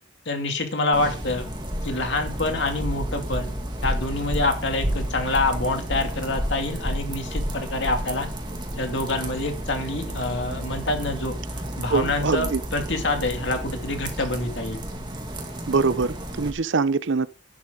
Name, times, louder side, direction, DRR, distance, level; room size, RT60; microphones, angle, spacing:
voice 1, 0.3-1.5 1.8-3.5 3.8-8.3 8.8-11.3 11.8-14.8, left 2 dB, 55° left, 2.5 m, -26 dB
sound 1, 0.9-16.5, equal, 20° right, 2.2 m, -31 dB
voice 2, 11.9-12.6 15.7-17.3, right 4 dB, 60° right, 0.6 m, -23 dB
11.5 x 11.5 x 3.8 m
head